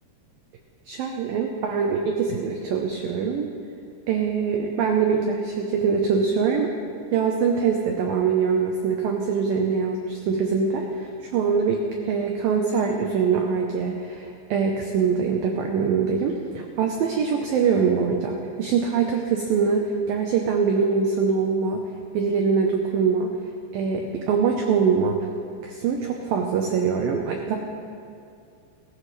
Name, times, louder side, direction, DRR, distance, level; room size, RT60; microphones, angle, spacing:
voice 1, 0.9-3.5 4.1-6.7 7.1-21.9 22.1-23.3 23.7-25.3 25.6-27.6, right 5 dB, 85° right, 2 dB, 2.0 m, -23 dB
21.0 x 14.5 x 3.2 m, 2.4 s
omnidirectional pair, 5.3 m